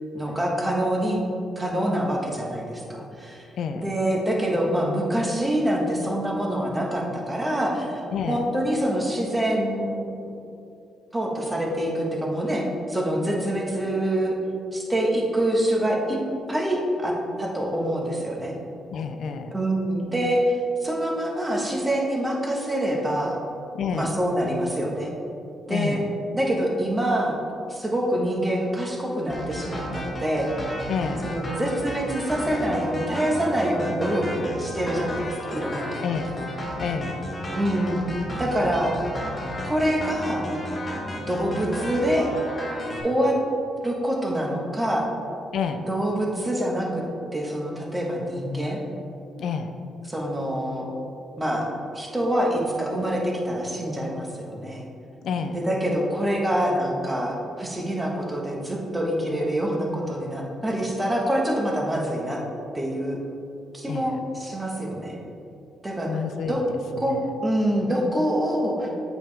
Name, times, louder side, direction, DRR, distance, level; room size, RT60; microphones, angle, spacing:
voice 1, 0.1-1.2 1.6-3.5 3.7-8.0 8.3-10.0 11.1-14.4 14.7-16.2 16.5-18.5 19.5-23.4 23.9-25.1 25.7-26.0 26.3-27.4 27.7-30.5 31.2-35.9 37.5-38.0 38.4-38.9 39.6-40.5 41.3-42.3 43.0-43.4 43.8-45.1 45.9-47.0 47.3-48.8 50.0-50.9 51.4-51.7 51.9-54.9 55.5-62.4 62.7-63.2 63.7-65.2 65.8-66.1 66.5-66.6 67.0-68.9, right 1 dB, 15° right, -1 dB, 1.3 m, -25 dB
voice 2, 18.9-19.5 23.7-24.1 25.7-26.1 30.9-31.3 36.0-36.4 36.8-37.2 45.5-45.9 49.4-49.7 55.2-55.6 63.9-64.1 66.1-66.6 67.0-67.2, left 6 dB, 70° left, 7 dB, 0.4 m, -29 dB
sound 1, 29.3-43.0, equal, 25° left, 1.4 m, -33 dB
7.6 x 5.3 x 3.4 m, 2.6 s
cardioid pair, 90°, 0 cm